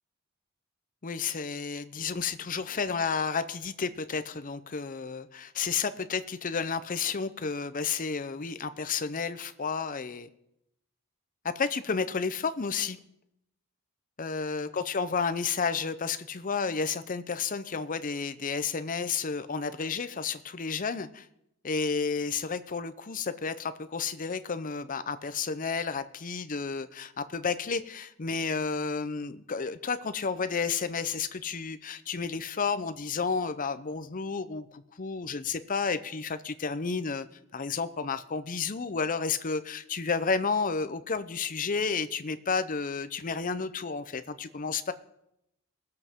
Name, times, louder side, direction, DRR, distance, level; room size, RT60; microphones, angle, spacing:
voice 1, 1.0-10.3 11.6-13.0 14.2-21.3 21.6-37.3 37.5-44.9, left 5 dB, 35° left, 12 dB, 0.6 m, -31 dB
21.0 x 7.7 x 3.7 m, 0.81 s
head